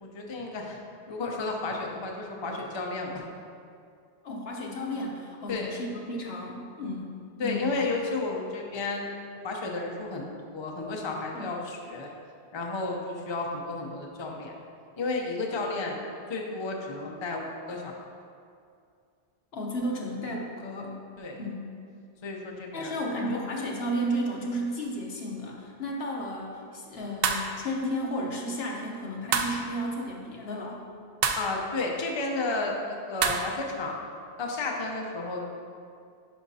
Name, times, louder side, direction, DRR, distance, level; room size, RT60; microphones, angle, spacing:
voice 1, 0.0-0.8 1.1-3.1 5.5-5.7 7.4-9.1 9.4-12.1 12.5-14.5 15.0-16.0 16.3-17.9 21.2-21.4 22.2-22.9 31.4-34.0 34.4-35.4, left 3 dB, 30° left, 0 dB, 0.6 m, -32 dB
voice 2, 4.2-7.1 7.4-7.6 11.3-11.5 19.5-20.9 21.4-21.6 22.7-30.8, equal, 65° left, -1 dB, 1.2 m, -33 dB
sound 1, 27.2-27.5 29.3-29.7 31.2-31.5 33.2-33.5, right 6 dB, 65° right, 0.7 m, -26 dB
10.5 x 5.0 x 2.7 m, 2.4 s
omnidirectional pair, 1.1 m